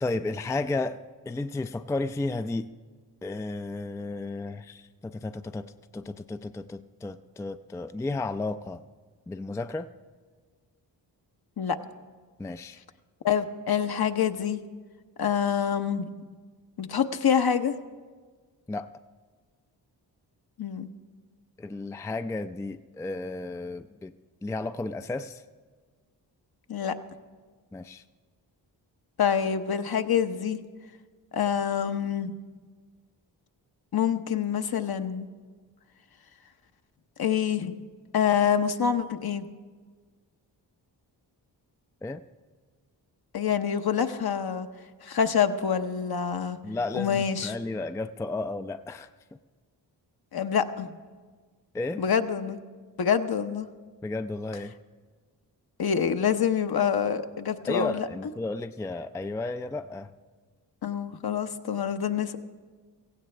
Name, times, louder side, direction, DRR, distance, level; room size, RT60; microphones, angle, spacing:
voice 1, 0.0-2.7 3.2-8.8 9.3-9.9 12.4-12.8 18.7-18.9 21.6-24.2 24.4-25.4 27.7-28.0 42.0-42.2 46.6-49.1 51.7-52.0 54.0-54.7 57.7-60.1, left 2 dB, 5° left, 10 dB, 0.4 m, -33 dB
voice 2, 13.2-14.6 15.2-16.1 16.8-17.7 20.6-20.9 26.7-27.0 29.2-30.6 31.3-32.4 33.9-35.3 37.2-37.8 38.1-39.5 43.3-44.7 45.0-46.6 46.9-47.5 50.3-51.0 52.0-52.6 53.0-53.7 55.8-58.1 60.8-62.4, left 8 dB, 55° left, 8 dB, 0.9 m, -26 dB
16.5 x 15.5 x 3.3 m, 1.5 s
cardioid pair, 50°, 45 cm